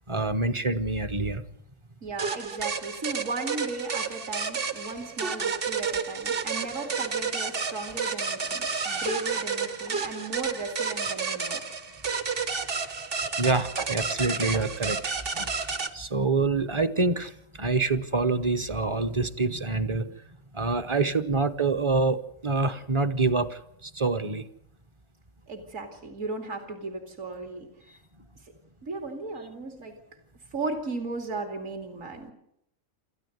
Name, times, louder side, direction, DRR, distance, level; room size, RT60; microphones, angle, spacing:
voice 1, 0.1-1.4 13.3-15.5 15.9-17.3 17.6-20.1 20.5-24.5, right 3 dB, 25° right, 10 dB, 0.7 m, -26 dB
voice 2, 2.0-11.6 25.5-27.7 28.8-30.0 30.5-32.3, right 3 dB, 65° right, 4 dB, 2.9 m, -36 dB
sound 1, 2.2-15.9, right 5 dB, 45° right, 1.3 m, -31 dB
27.5 x 14.0 x 7.9 m, 0.79 s
omnidirectional pair, 1.4 m